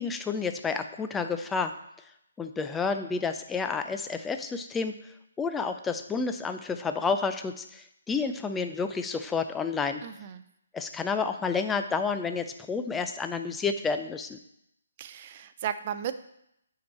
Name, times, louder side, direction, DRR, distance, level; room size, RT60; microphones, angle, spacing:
voice 1, 0.0-1.7 2.4-4.9 5.4-10.0 10.7-14.4, left 5 dB, 10° left, 8 dB, 0.5 m, -30 dB
voice 2, 10.0-10.4 15.0-16.1, right 9 dB, 40° right, 11 dB, 0.5 m, -35 dB
9.1 x 4.9 x 4.2 m, 0.79 s
hypercardioid pair, 145°, 0 cm